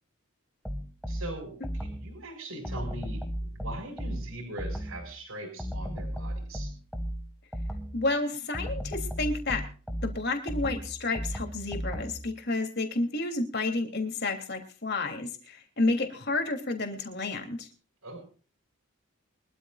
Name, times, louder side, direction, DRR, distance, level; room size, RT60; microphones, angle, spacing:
sound 1, 0.6-2.2 2.6-5.1 5.6-8.1 8.5-12.3, equal, ahead, 1.9 m, -35 dB
voice 1, 1.1-6.7 18.0-18.2, right 1 dB, 70° right, 4 dB, 5.3 m, -41 dB
voice 2, 7.9-9.6 10.0-17.7, left 2 dB, 50° left, 3 dB, 3.2 m, -30 dB
24.0 x 13.0 x 2.5 m, 0.38 s
head